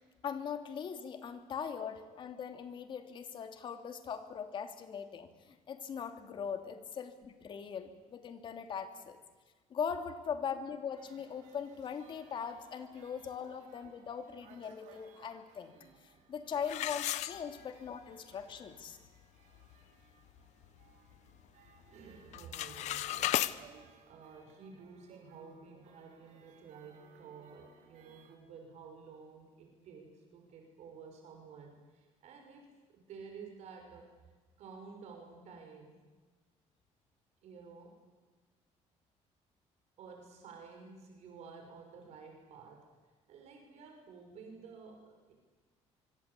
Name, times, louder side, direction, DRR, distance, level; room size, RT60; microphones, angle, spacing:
voice 1, 0.2-9.2 9.7-15.7 16.3-19.0, left 7 dB, 40° left, 7 dB, 2.9 m, -40 dB
sound 1, 11.0-28.4, right 7 dB, 85° right, 5.2 m, -63 dB
sound 2, 16.7-17.9 18.4-18.5 19.0-19.1 19.5-19.8 20.3-21.4 21.7-22.0 22.3-23.5, left 14 dB, 70° left, 1.0 m, -35 dB
voice 2, 21.9-23.5 23.8-32.7 32.9-34.1 34.6-36.0 37.4-38.0 40.0-42.9 43.3-45.3, right 5 dB, 65° right, 3 dB, 6.0 m, -52 dB
25.5 x 24.5 x 8.5 m, 1.3 s
cardioid pair, 160°, 12 cm